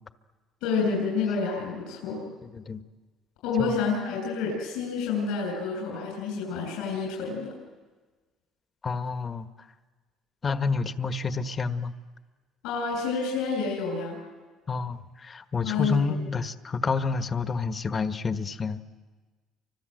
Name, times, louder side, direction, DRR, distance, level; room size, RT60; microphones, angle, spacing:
voice 1, 0.6-2.3 3.4-7.5 12.6-14.2 15.6-16.1, left 5 dB, 85° left, -1 dB, 7.2 m, -29 dB
voice 2, 2.4-2.8 3.6-3.7 8.8-9.7 10.4-11.9 14.7-18.8, left 4 dB, 35° left, 9 dB, 1.3 m, -29 dB
29.5 x 25.5 x 7.8 m, 1.4 s
cardioid pair, 100°, 0 cm